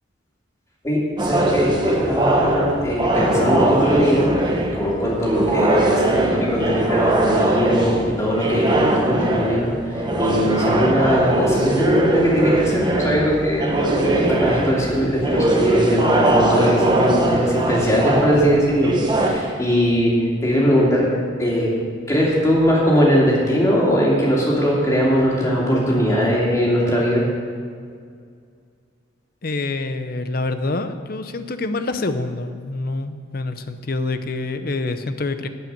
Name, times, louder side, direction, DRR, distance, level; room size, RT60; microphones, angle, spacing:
voice 1, 0.8-4.3 4.7-9.7 9.9-20.1 20.4-21.1 21.4-21.7 22.1-27.2, equal, 15° left, -5 dB, 2.7 m, -20 dB
sound 1, 1.2-19.3, right 1 dB, 20° right, 1.1 m, -20 dB
voice 2, 29.4-35.5, left 2 dB, 45° left, 9 dB, 0.7 m, -26 dB
12.5 x 5.7 x 9.0 m, 2.2 s
head